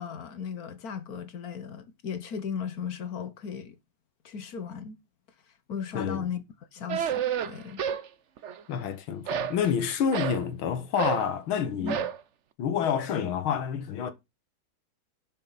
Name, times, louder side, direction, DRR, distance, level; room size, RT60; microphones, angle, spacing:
voice 1, 0.0-3.8 4.2-4.9 5.7-6.4 6.7-7.8 11.8-12.0, left 6 dB, 50° left, 1.4 m, -36 dB
voice 2, 5.9-6.3 8.7-12.1 12.6-14.1, left 7 dB, 75° left, 2.0 m, -28 dB
sound 1, 6.9-8.1 8.4-8.9 9.3-10.4 11.0-11.3 11.9-12.2, right 9 dB, 65° right, 0.7 m, -30 dB
12.0 x 7.6 x 4.1 m
omnidirectional pair, 2.3 m